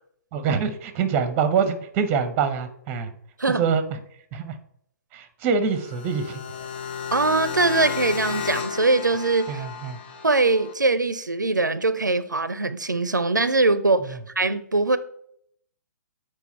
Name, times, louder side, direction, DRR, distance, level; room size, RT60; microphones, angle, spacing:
voice 1, 0.3-3.1 3.6-3.9 4.3-4.6 5.1-6.4 9.5-10.0, right 6 dB, 20° right, 0.7 m, -25 dB
sound 1, 5.7-10.7, left 6 dB, 35° left, 0.7 m, -33 dB
voice 2, 7.1-9.6 10.2-15.0, right 3 dB, 85° right, 0.4 m, -22 dB
7.0 x 4.6 x 4.3 m
figure-of-eight pair, 125°, 10 cm